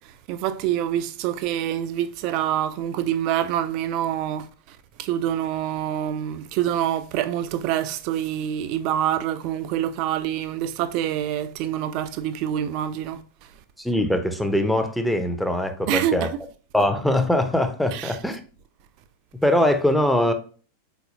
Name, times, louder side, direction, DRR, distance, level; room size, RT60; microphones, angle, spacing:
voice 1, 0.3-4.5 5.0-13.2 15.9-16.3 17.9-18.1, right 11 dB, 45° right, 0.4 m, -26 dB
voice 2, 13.8-16.3 16.7-18.4 19.4-20.3, left 1 dB, ahead, 0.6 m, -22 dB
4.0 x 4.0 x 2.7 m
figure-of-eight pair, 90°, 0 cm